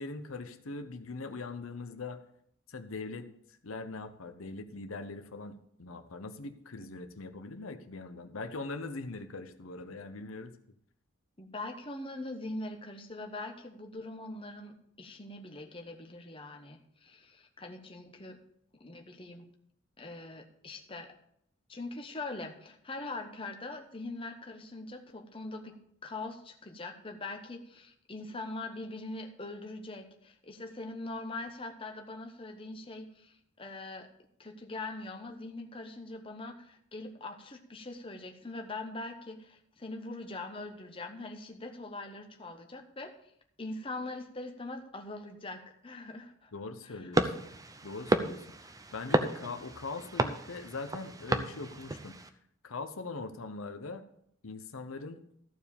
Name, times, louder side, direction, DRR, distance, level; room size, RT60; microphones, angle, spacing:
voice 1, 0.0-2.2 2.7-3.3 3.6-10.5 46.5-47.2 47.8-52.2 52.6-54.0 54.4-55.2, left 3 dB, 80° left, 8 dB, 0.8 m, -41 dB
voice 2, 11.4-18.4 18.8-19.5 20.0-21.1 21.7-25.8 26.0-34.1 34.4-43.1 43.6-46.5 46.8-47.1, left 2 dB, 25° left, 4 dB, 1.0 m, -42 dB
sound 1, 47.1-52.3, right 1 dB, 15° right, 0.6 m, -32 dB
14.0 x 4.7 x 7.1 m, 0.70 s
head